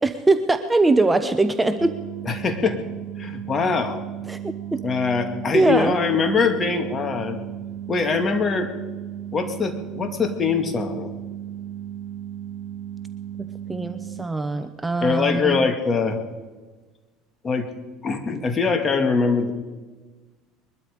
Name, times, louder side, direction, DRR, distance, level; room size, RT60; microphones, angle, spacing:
voice 1, 0.0-1.9 4.3-4.8 5.5-5.9 13.7-15.7, right 2 dB, 15° right, 9 dB, 0.9 m, -21 dB
sound 1, 1.8-14.3, right 10 dB, 60° right, 0.7 m, -35 dB
voice 2, 2.3-2.8 3.2-4.0 4.8-7.5 7.9-8.7 9.3-11.1 15.0-16.2 17.4-17.7 18.0-19.5, left 5 dB, 30° left, 6 dB, 2.3 m, -23 dB
22.0 x 12.5 x 5.2 m, 1.3 s
supercardioid pair, 95°, 0 cm